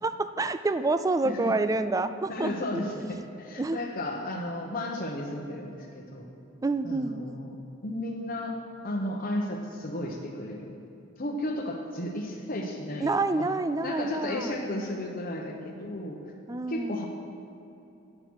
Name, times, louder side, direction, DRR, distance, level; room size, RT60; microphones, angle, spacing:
voice 1, 0.0-2.8 3.6-3.8 6.6-7.4 13.0-14.5 16.5-17.0, right 2 dB, 15° right, 12 dB, 0.3 m, -28 dB
voice 2, 2.3-6.3 6.8-8.6 8.8-10.8 11.2-13.5 13.8-16.2 16.7-17.1, left 1 dB, 45° left, -1 dB, 0.9 m, -34 dB
9.9 x 8.2 x 6.2 m, 2.8 s
head